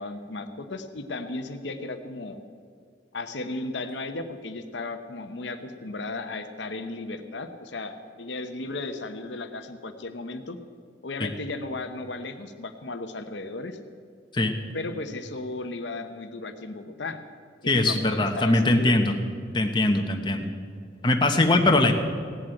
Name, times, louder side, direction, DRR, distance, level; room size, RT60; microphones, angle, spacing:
voice 1, 0.0-2.4 3.1-10.6 11.0-13.8 14.7-17.2 17.6-19.0, left 2 dB, 75° left, 7 dB, 0.9 m, -35 dB
voice 2, 17.7-19.1 19.5-20.5 21.0-21.9, left 2 dB, 25° left, 4 dB, 1.0 m, -21 dB
16.5 x 7.7 x 9.0 m, 2.2 s
head